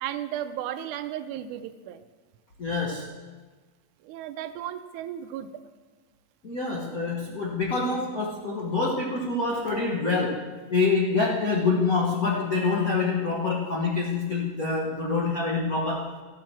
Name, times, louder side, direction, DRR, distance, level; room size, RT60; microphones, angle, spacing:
voice 1, 0.0-2.0 4.0-5.5, right 11 dB, 80° right, 10 dB, 2.0 m, -34 dB
voice 2, 2.6-3.1 6.4-16.1, left 4 dB, 85° left, -3 dB, 0.7 m, -26 dB
15.0 x 8.8 x 4.5 m, 1.4 s
omnidirectional pair, 3.6 m